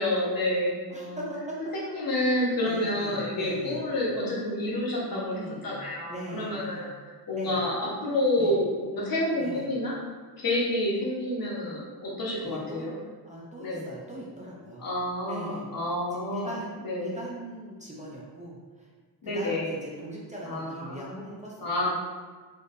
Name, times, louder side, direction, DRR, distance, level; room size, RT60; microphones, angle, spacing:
voice 1, 0.0-1.2 1.7-9.9 10.4-12.9 13.6-13.8 14.8-16.5 16.8-17.2 19.2-19.7 20.4-21.1 21.6-21.9, left 1 dB, 55° left, -6 dB, 1.2 m, -29 dB
voice 2, 0.9-1.6 2.6-3.8 5.1-6.9 7.3-7.6 8.4-8.6 9.4-9.7 12.4-12.9 13.2-14.9 15.3-15.7 16.3-18.9 19.2-21.9, right 1 dB, 15° right, -5 dB, 0.5 m, -40 dB
4.2 x 3.2 x 2.6 m, 1.5 s
wide cardioid pair, 140°, 42 cm